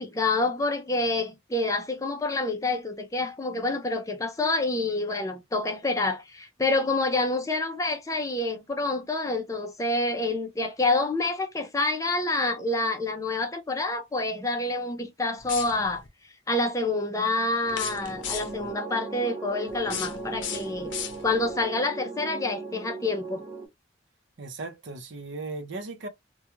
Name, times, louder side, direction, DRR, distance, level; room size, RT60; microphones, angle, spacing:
voice 1, 0.0-16.0 16.5-20.9 21.2-23.4, left 2 dB, 15° left, 0.5 m, -27 dB
sound 1, 15.4-16.1 17.7-18.7 19.7-21.5, left 8 dB, 70° left, 0.6 m, -36 dB
sound 2, 17.6-23.7, right 3 dB, 15° right, 1.0 m, -38 dB
voice 2, 24.4-26.1, right 3 dB, 65° right, 0.7 m, -37 dB
2.3 x 2.2 x 2.9 m
head